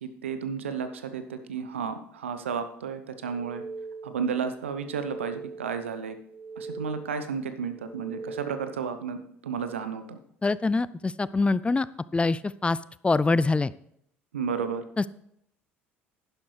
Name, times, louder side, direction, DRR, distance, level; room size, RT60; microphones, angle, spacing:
voice 1, 0.0-3.6 4.0-6.2 6.6-10.2 14.3-14.8, right 6 dB, 80° right, 10 dB, 0.8 m, -32 dB
sound 1, 3.2-4.3 4.7-5.8 6.2-7.3 7.7-8.9, right 4 dB, 20° right, 0.6 m, -41 dB
voice 2, 10.4-11.9 12.1-12.8 13.0-13.7 15.0-15.1, left 3 dB, 15° left, 19 dB, 0.4 m, -24 dB
11.5 x 10.5 x 3.3 m, 0.73 s
figure-of-eight pair, 60°, 7 cm